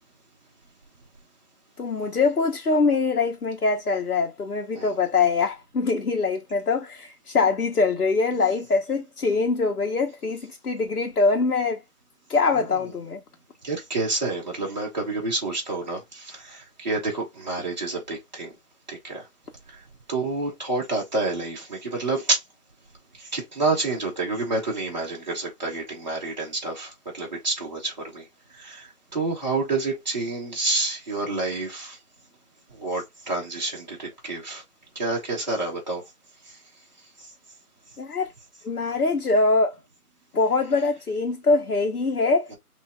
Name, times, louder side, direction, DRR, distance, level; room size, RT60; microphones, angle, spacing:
voice 1, 1.8-11.8 12.3-13.2 38.0-38.3 38.6-39.8 40.3-42.5, left 4 dB, 80° left, 1.0 m, -23 dB
voice 2, 13.6-18.5 18.9-19.3 19.7-19.8 20.1-22.4 23.1-32.0 32.7-34.6 35.0-36.0 36.4-36.6 37.2-37.3 42.5-42.6, right 3 dB, 30° right, 1.7 m, -29 dB
5.8 x 2.7 x 2.3 m
figure-of-eight pair, 175°, 45 cm